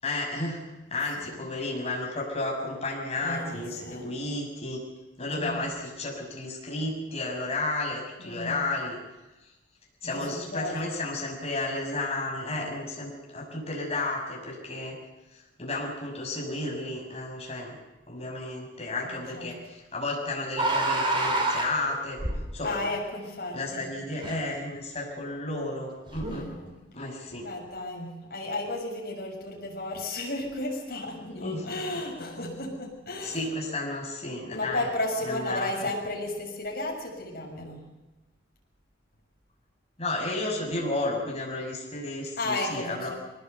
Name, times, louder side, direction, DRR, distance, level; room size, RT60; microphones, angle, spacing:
voice 1, 0.0-0.6 0.9-4.8 5.2-9.0 10.0-15.0 15.6-17.7 18.1-22.2 22.5-22.8 23.5-26.5 26.9-27.5 31.3-31.6 31.9-32.0 33.2-34.9 35.3-35.7 40.0-43.1, left 2 dB, 30° left, -1 dB, 6.5 m, -32 dB
voice 2, 3.2-4.1 5.3-5.6 8.2-8.6 10.0-10.8 19.0-19.5 22.6-23.9 26.2-26.8 27.3-33.5 34.5-37.8 42.4-43.1, left 2 dB, 55° left, 0 dB, 6.8 m, -34 dB
sound 1, 20.6-22.6 24.2-24.4 26.1-26.5, right 2 dB, 25° right, 3.5 m, -27 dB
23.0 x 19.5 x 8.2 m, 1.0 s
head